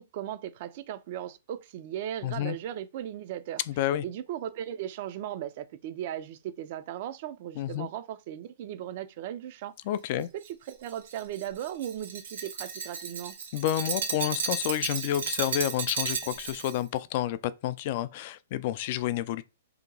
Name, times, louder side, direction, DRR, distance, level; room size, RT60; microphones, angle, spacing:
voice 1, 0.0-3.6 4.0-9.7 10.2-13.3, right 11 dB, 50° right, 0.4 m, -37 dB
voice 2, 2.2-2.6 3.7-4.0 7.6-7.9 9.9-10.3 13.5-19.4, left 12 dB, 50° left, 0.3 m, -30 dB
Glass, 10.4-16.8, right 6 dB, 70° right, 1.0 m, -34 dB
2.8 x 2.2 x 3.8 m
hypercardioid pair, 130°, 0 cm